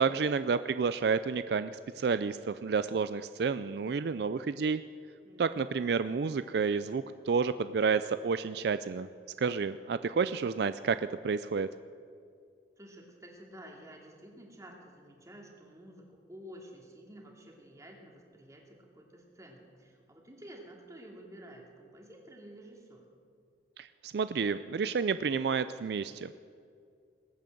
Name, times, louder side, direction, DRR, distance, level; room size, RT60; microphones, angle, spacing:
voice 1, 0.0-4.8 5.4-9.1 9.4-11.0 11.2-11.7 23.8-26.4, right 5 dB, 65° right, 13 dB, 0.4 m, -30 dB
voice 2, 5.2-6.0 12.8-16.0 16.3-23.0, right 1 dB, 20° right, 0 dB, 2.5 m, -51 dB
20.0 x 9.0 x 7.7 m, 2.3 s
head